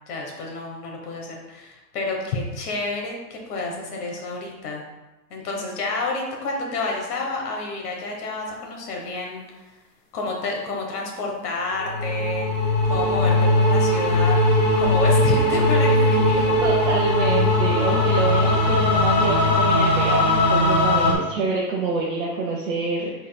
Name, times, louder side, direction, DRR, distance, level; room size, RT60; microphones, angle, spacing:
voice 1, 0.1-4.8 5.3-9.7 10.1-14.4 14.8-16.5, left 3 dB, 65° left, 0 dB, 1.3 m, -29 dB
sound 1, 11.8-21.1, left 1 dB, 30° left, 0.4 m, -19 dB
voice 2, 16.6-23.1, right 4 dB, 50° right, -3 dB, 0.8 m, -26 dB
5.5 x 4.1 x 2.3 m, 1.1 s
supercardioid pair, 165°, 49 cm